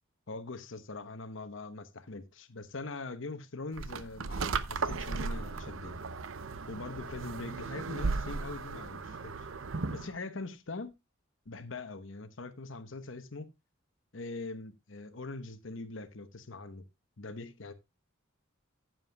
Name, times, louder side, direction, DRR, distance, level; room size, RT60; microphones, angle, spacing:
voice 1, 0.3-6.0 6.7-9.5 9.9-10.9 11.5-13.5 14.1-16.8 17.2-17.7, left 3 dB, 65° left, 1.1 m, -42 dB
sound 1, 3.8-10.1, right 4 dB, 75° right, 0.7 m, -36 dB
14.5 x 7.7 x 2.3 m
head